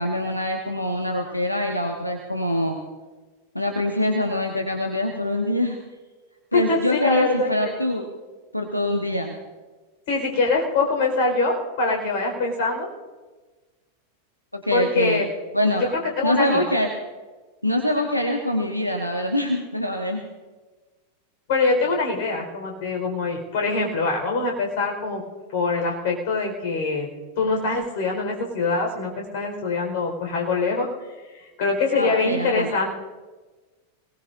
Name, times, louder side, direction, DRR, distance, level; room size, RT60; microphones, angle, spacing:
voice 1, 0.0-2.8 3.5-5.8 6.5-8.1 8.5-9.4 14.6-15.2 15.5-15.8 16.2-16.9 17.6-20.2 31.9-32.7, left 1 dB, 90° left, 2 dB, 1.2 m, -24 dB
voice 2, 6.5-7.7 10.1-12.9 14.7-15.2 16.2-16.6 21.5-25.2 25.5-27.1 27.4-30.9 31.6-32.9, left 3 dB, 50° left, 1 dB, 4.6 m, -23 dB
26.0 x 18.5 x 2.6 m, 1.3 s
figure-of-eight pair, 90°, 0 cm